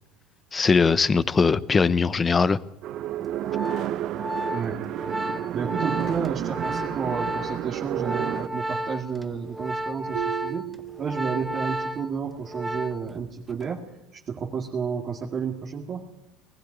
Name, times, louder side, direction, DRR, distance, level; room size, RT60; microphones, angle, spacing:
voice 1, 0.5-2.6, left 5 dB, 20° left, 17 dB, 0.8 m, -20 dB
sound 1, 2.8-8.5, right 12 dB, 50° right, 0.8 m, -31 dB
Organ, 3.2-13.2 13.5-13.8, right 1 dB, 10° right, 0.9 m, -33 dB
voice 2, 4.5-4.8 5.5-10.7 11.0-13.8 14.1-16.1, right 6 dB, 35° right, -2 dB, 2.2 m, -31 dB
sound 2, 10.1-11.8, right 17 dB, 90° right, 0.7 m, -36 dB
20.0 x 15.0 x 9.3 m, 0.87 s
cardioid pair, 135°, 0 cm